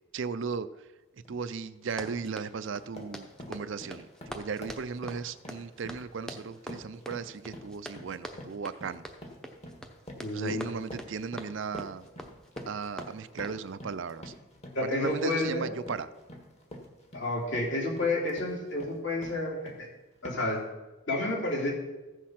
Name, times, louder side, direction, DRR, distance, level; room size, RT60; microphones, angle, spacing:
voice 1, 0.1-0.7 1.1-9.0 10.3-12.1 12.7-14.3 14.8-16.1, right 5 dB, 55° right, 13 dB, 0.4 m, -36 dB
sound 1, 1.2-1.4 1.8-2.3 2.6-19.9 20.2-20.6, equal, 30° left, 1.6 m, -47 dB
Run, 1.8-13.6, equal, 5° left, 0.8 m, -45 dB
voice 2, 10.2-10.8 14.7-15.8 17.1-19.9 20.2-20.6 21.1-21.7, left 2 dB, 55° left, -1 dB, 3.1 m, -30 dB
15.0 x 6.4 x 5.8 m, 1.1 s
head